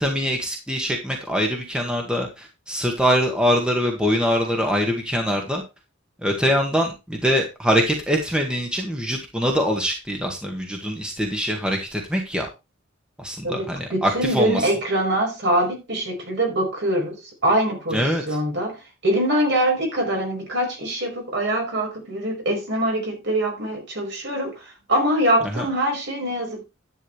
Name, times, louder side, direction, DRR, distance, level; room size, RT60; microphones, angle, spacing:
voice 1, 0.0-5.6 6.2-12.5 13.2-14.6 17.9-18.2 25.5-25.7, equal, 5° right, 1.9 m, -23 dB
voice 2, 13.4-26.6, right 1 dB, 60° right, 5.3 m, -24 dB
11.0 x 9.1 x 3.4 m
head